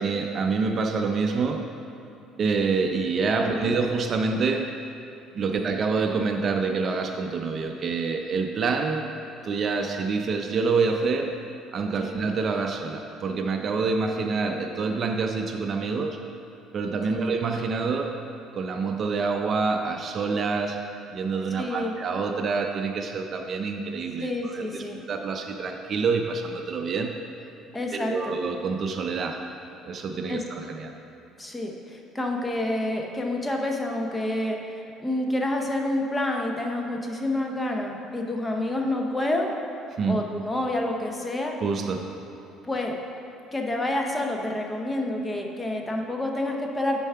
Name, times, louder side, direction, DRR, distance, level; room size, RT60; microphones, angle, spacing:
voice 1, 0.0-1.7 2.4-4.8 5.3-9.1 9.4-11.4 11.7-16.2 16.7-18.2 18.5-20.8 21.1-27.1 27.9-29.5 29.8-30.9 40.0-40.2 41.6-42.1, right 4 dB, 40° right, 4 dB, 0.5 m, -27 dB
voice 2, 3.4-3.8 5.5-5.7 12.0-12.2 17.1-17.3 21.6-21.9 24.2-25.0 27.7-28.4 30.3-30.4 31.4-39.5 40.1-41.6 42.7-43.0 43.5-47.0, left 1 dB, 15° left, 1 dB, 0.7 m, -28 dB
6.9 x 4.6 x 5.6 m, 2.9 s
cardioid pair, 125°, 0 cm